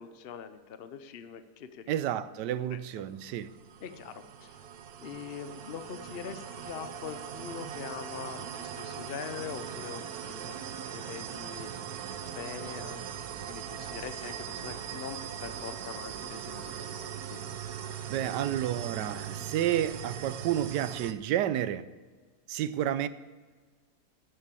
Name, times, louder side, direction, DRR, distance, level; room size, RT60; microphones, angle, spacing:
voice 1, 0.0-2.0 2.7-2.8 3.8-4.6 5.0-10.6 10.9-17.4, left 7 dB, 60° left, 0.6 m, -43 dB
voice 2, 1.9-3.5 18.1-21.8 22.5-23.1, right 11 dB, 85° right, 1.2 m, -30 dB
sound 1, 3.1-21.1, right 8 dB, 65° right, 1.2 m, -40 dB
11.5 x 8.3 x 6.8 m
omnidirectional pair, 1.8 m